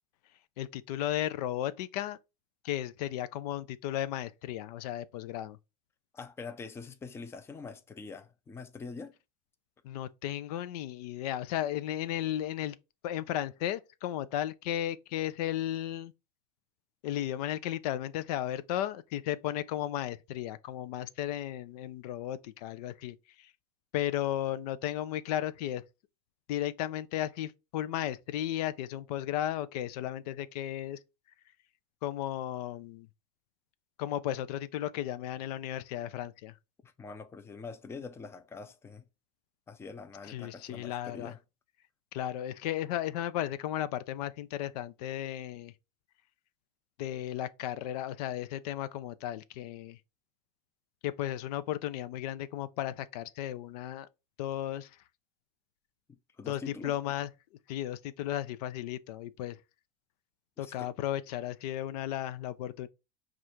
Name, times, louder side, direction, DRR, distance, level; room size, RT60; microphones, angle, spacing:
voice 1, 0.6-2.2 2.6-5.6 9.8-12.8 13.0-16.1 17.0-23.5 23.9-25.8 26.5-31.0 32.0-33.1 34.0-36.5 40.2-41.3 42.1-45.7 47.0-50.0 51.0-54.1 54.4-55.0 56.5-57.3 57.7-59.6 60.6-62.9, left 12 dB, 75° left, 0.5 m, -34 dB
voice 2, 6.1-9.1 36.8-39.0 39.7-41.4 56.4-57.0 60.6-60.9, left 4 dB, 10° left, 0.4 m, -44 dB
4.9 x 2.4 x 4.3 m
supercardioid pair, 125°, 21 cm